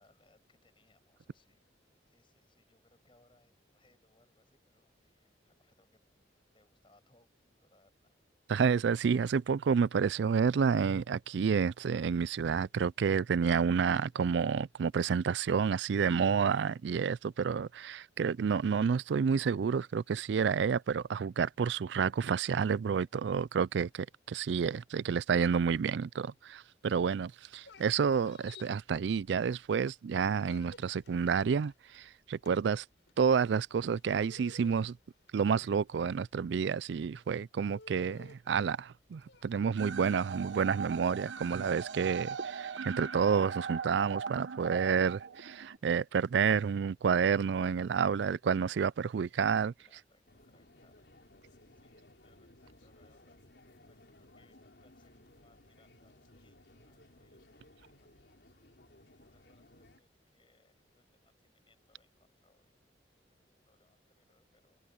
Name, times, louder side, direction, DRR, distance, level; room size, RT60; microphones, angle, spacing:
voice 1, 0.0-1.7 2.1-8.2 49.1-51.1 51.4-53.4 53.9-57.7 58.0-58.3 58.9-62.9 63.2-64.8, left 2 dB, 30° left, 6.8 m, -71 dB
voice 2, 8.5-32.8 33.2-35.0 35.3-49.7, right 6 dB, 70° right, 0.4 m, -29 dB
sound 1, 27.4-29.8 30.1-42.4, left 3 dB, 80° left, 5.5 m, -57 dB
sound 2, 39.8-45.8, right 6 dB, 90° right, 1.3 m, -39 dB
sound 3, 50.3-60.0, left 1 dB, 65° left, 4.3 m, -60 dB
head